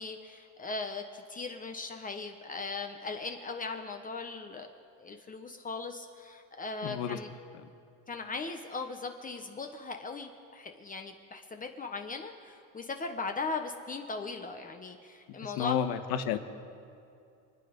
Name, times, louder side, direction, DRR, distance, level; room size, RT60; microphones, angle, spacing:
voice 1, 0.0-4.7 5.0-7.3 8.1-15.8, left 4 dB, 20° left, 5 dB, 1.0 m, -38 dB
voice 2, 6.8-7.2 15.3-16.4, left 9 dB, 70° left, 8 dB, 1.3 m, -31 dB
28.0 x 9.4 x 5.2 m, 2.5 s
cardioid pair, 130°, 38 cm